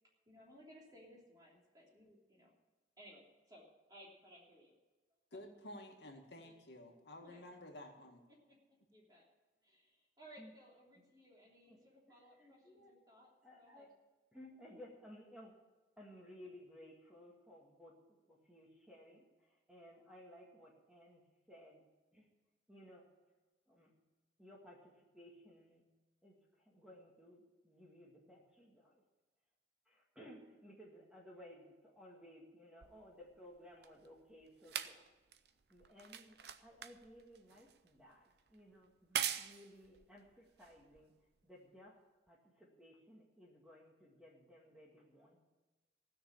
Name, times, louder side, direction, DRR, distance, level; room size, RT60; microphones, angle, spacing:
voice 1, 0.3-2.5 3.0-4.7 6.4-6.5 7.2-7.5 8.3-8.5 8.9-9.3 9.6-13.9, equal, 20° right, -3 dB, 3.2 m, -61 dB
voice 2, 5.3-8.3, left 1 dB, 65° left, 2 dB, 1.9 m, -52 dB
voice 3, 12.2-12.9 13.4-13.9 14.3-15.5 16.0-18.0 18.3-21.9 22.1-22.3 22.7-23.1 23.7-23.9 24.4-25.8 26.2-29.0 29.9-35.0 35.7-41.1 41.4-42.0 42.3-45.5, equal, 5° right, -3 dB, 1.8 m, -58 dB
sound 1, 32.8-41.4 42.3-42.4, right 9 dB, 60° right, 0.6 m, -45 dB
16.0 x 6.6 x 8.7 m, 1.2 s
head